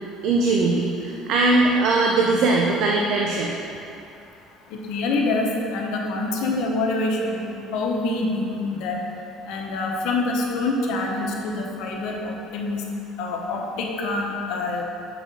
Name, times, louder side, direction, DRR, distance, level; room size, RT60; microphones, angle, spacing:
voice 1, 0.2-3.6, right 3 dB, 55° right, -1 dB, 0.5 m, -20 dB
voice 2, 4.7-7.5 7.7-9.0 9.5-12.8 13.2-14.8, left 2 dB, 70° left, 0 dB, 0.9 m, -26 dB
6.5 x 4.9 x 3.8 m, 2.6 s
cardioid pair, 150°, 0 cm